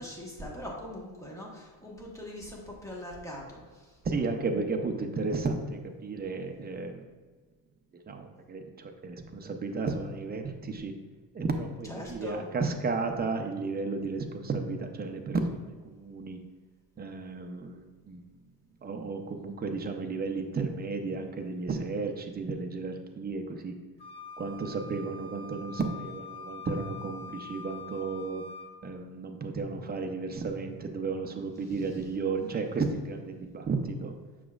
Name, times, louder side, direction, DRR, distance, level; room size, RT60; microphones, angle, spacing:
voice 1, 0.0-3.8 11.8-12.4, left 1 dB, 5° left, -3 dB, 1.3 m, -41 dB
voice 2, 4.0-7.0 7.9-10.9 11.3-16.4 17.0-18.2 18.8-23.7 24.4-28.4 28.8-34.1, right 4 dB, 25° right, 4 dB, 0.6 m, -33 dB
Wind instrument woodwind instrument, 24.0-28.7, left 4 dB, 50° left, 1.1 m, -44 dB
7.2 x 6.1 x 2.4 m, 1.4 s
cardioid pair, 140°, 41 cm